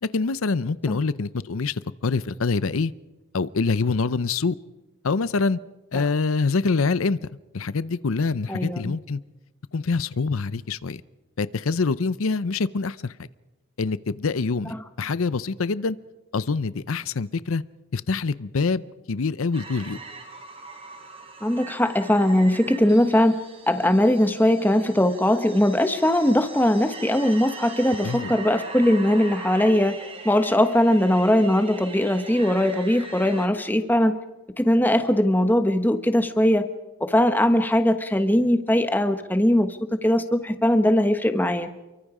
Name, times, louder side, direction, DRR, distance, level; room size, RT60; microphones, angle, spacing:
voice 1, 0.0-2.9 3.3-4.6 5.0-5.6 5.9-7.2 7.5-9.2 9.7-11.0 11.4-13.3 13.8-16.0 16.3-17.6 17.9-18.8 19.1-20.0 28.0-28.3, left 4 dB, 85° left, 17 dB, 0.7 m, -25 dB
voice 2, 8.5-8.9 21.4-23.4 23.7-30.0 30.2-34.2 34.6-36.7 37.0-41.7, left 1 dB, 10° left, 8 dB, 1.1 m, -20 dB
sound 1, 19.5-33.5, right 3 dB, 25° right, 3.7 m, -41 dB
29.0 x 23.5 x 4.9 m, 1.1 s
head